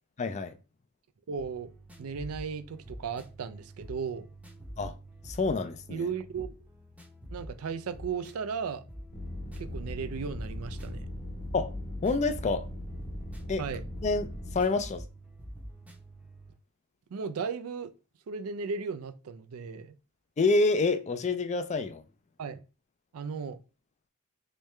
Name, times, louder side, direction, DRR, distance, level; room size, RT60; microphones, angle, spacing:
voice 1, 0.2-0.5 4.8-5.0 5.2-6.1 11.5-11.7 12.0-12.7 13.5-13.6 14.0-14.3 14.5-15.0 20.4-22.0, left 3 dB, 30° left, 0.4 m, -27 dB
voice 2, 1.3-1.7 2.0-4.3 5.9-6.6 7.3-8.8 9.6-11.1 13.6-13.8 17.1-17.9 18.3-19.9 22.4-22.6 23.1-23.6, right 5 dB, 85° right, 0.4 m, -35 dB
sound 1, 1.4-16.6, equal, 5° right, 0.6 m, -47 dB
sound 2, 9.1-14.6, left 1 dB, 55° left, 1.1 m, -39 dB
3.3 x 3.2 x 3.1 m
head